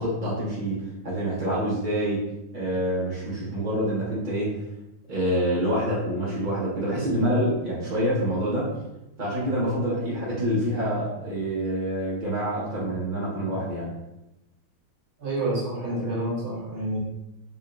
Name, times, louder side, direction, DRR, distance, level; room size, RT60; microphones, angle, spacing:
voice 1, 0.0-2.2 2.5-4.5 5.1-8.7 9.2-13.9, equal, 50° right, -8 dB, 0.5 m, -26 dB
voice 2, 15.2-17.0, right 1 dB, 90° right, -7 dB, 2.0 m, -28 dB
4.9 x 2.4 x 2.5 m, 0.91 s
omnidirectional pair, 2.2 m